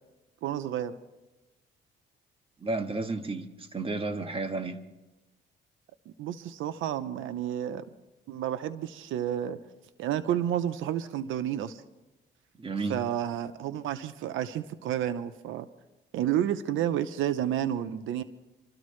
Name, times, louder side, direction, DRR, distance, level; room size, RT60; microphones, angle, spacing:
voice 1, 0.4-0.9 6.2-7.8 8.3-9.6 10.0-11.8 12.9-15.7 16.1-18.2, right 10 dB, 85° right, 0.7 m, -30 dB
voice 2, 2.6-4.8 12.6-13.0, right 3 dB, 25° right, 1.5 m, -32 dB
26.0 x 13.5 x 3.2 m
cardioid pair, 90°, 20 cm